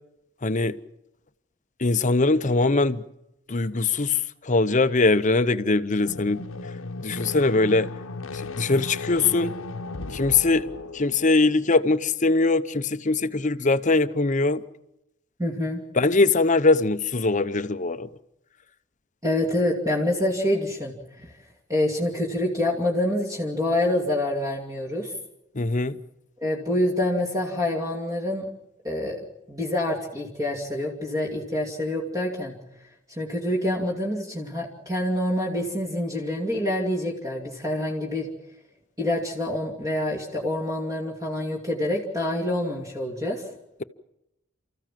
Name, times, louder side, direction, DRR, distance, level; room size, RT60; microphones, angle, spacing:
voice 1, 0.4-0.8 1.8-3.0 3.5-6.4 7.0-7.9 8.6-9.5 10.1-10.7 10.9-14.6 16.0-18.1 25.6-26.0, left 3 dB, 40° left, 0.8 m, -22 dB
sound 1, 6.0-11.6, left 3 dB, 80° left, 1.0 m, -35 dB
voice 2, 15.4-15.8 19.2-20.9 21.7-25.1 26.4-28.4 28.8-29.2 29.5-32.5 33.2-38.3 39.0-43.5, left 1 dB, 15° right, 2.7 m, -26 dB
30.0 x 14.5 x 7.6 m
head